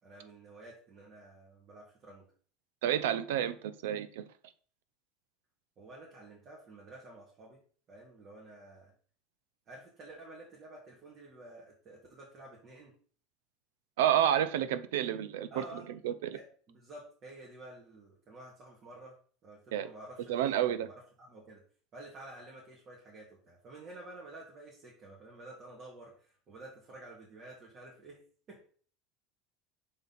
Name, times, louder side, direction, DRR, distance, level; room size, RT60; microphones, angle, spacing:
voice 1, 0.0-2.3 5.8-7.6 7.9-8.9 9.7-12.9 15.5-15.8 16.3-21.6 21.9-28.2 28.5-28.7, right 2 dB, 45° right, -4 dB, 2.2 m, -51 dB
voice 2, 2.8-4.2 14.0-15.6 16.0-16.4 19.7-19.9 20.3-20.9, right 10 dB, 80° right, 13 dB, 0.6 m, -30 dB
6.0 x 3.9 x 4.1 m, 0.43 s
supercardioid pair, 100°, 0 cm